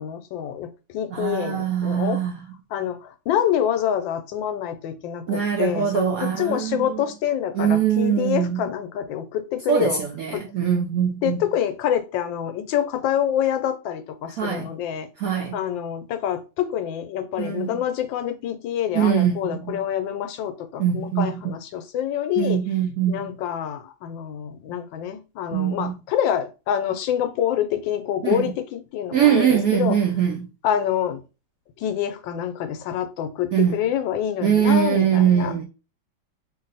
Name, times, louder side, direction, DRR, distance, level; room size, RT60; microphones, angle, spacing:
voice 1, 0.0-2.2 2.7-10.0 10.3-10.4 11.2-15.1 15.5-22.6 23.1-30.0 30.6-31.2 31.8-35.5, left 10 dB, 80° left, 1.3 m, -26 dB
voice 2, 1.1-2.4 5.3-7.0 7.5-8.6 9.7-11.5 14.4-14.7 15.2-15.6 17.4-17.8 18.9-19.8 20.8-21.4 22.4-23.3 25.5-26.0 28.2-28.4 29.1-30.5 33.5-33.8 34.4-35.6, right 9 dB, 75° right, 0.8 m, -22 dB
3.0 x 2.6 x 3.9 m
omnidirectional pair, 2.1 m